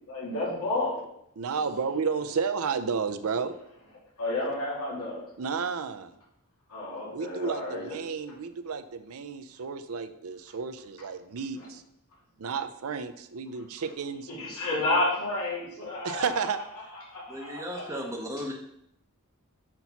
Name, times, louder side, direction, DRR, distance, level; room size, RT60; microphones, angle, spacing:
voice 1, 0.1-1.0 4.2-5.3 6.7-8.0 11.5-11.7 13.8-13.9 14.3-16.4 17.1-18.0, left 2 dB, 90° left, -7 dB, 2.6 m, -31 dB
voice 2, 1.4-3.5 5.4-6.1 7.1-11.8 12.4-14.3 16.0-16.6, right 5 dB, 70° right, 11 dB, 0.5 m, -32 dB
voice 3, 17.3-18.5, equal, 15° right, -2 dB, 0.7 m, -36 dB
6.0 x 4.1 x 5.8 m, 0.78 s
head